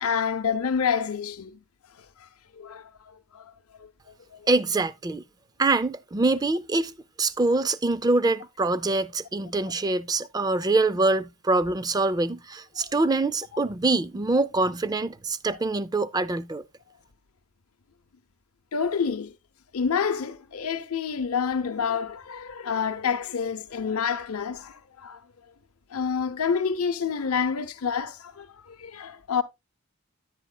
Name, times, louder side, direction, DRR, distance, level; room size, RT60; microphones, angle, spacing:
voice 1, 0.0-1.6 2.2-2.3 2.6-3.5 3.8-3.9 4.3-4.5 18.7-19.3 19.7-25.2 25.9-29.4, left 6 dB, 75° left, 0.6 m, -28 dB
voice 2, 4.5-5.2 5.6-16.6, right 3 dB, 15° right, 0.4 m, -24 dB
10.5 x 9.0 x 2.2 m
head